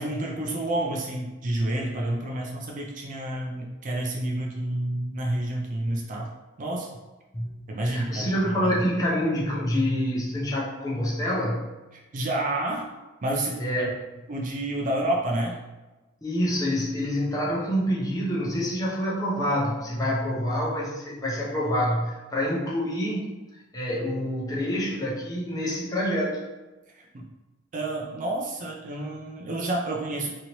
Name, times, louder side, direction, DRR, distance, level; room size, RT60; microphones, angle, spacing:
voice 1, 0.0-6.3 6.6-6.9 7.7-8.8 12.1-12.9 13.2-13.6 14.3-15.6 26.9-27.3 27.7-30.3, right 1 dB, 40° right, 0 dB, 0.4 m, -29 dB
voice 2, 7.9-11.7 13.6-13.9 16.2-23.3 23.7-26.4, equal, 15° left, -5 dB, 0.6 m, -27 dB
3.0 x 2.7 x 2.8 m, 1.1 s
head